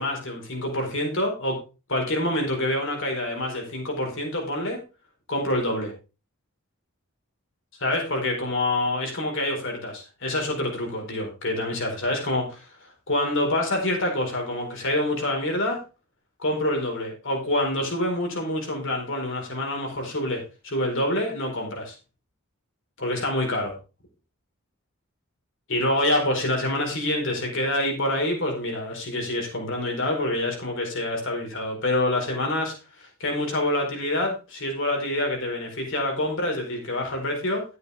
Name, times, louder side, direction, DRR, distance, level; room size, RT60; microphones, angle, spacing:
voice 1, 0.0-1.6 1.9-4.8 5.3-5.9 7.8-12.6 13.1-15.8 16.4-21.9 23.0-23.8 25.7-37.6, left 1 dB, 65° left, 1 dB, 4.7 m, -26 dB
12.5 x 9.3 x 3.5 m, 0.31 s
head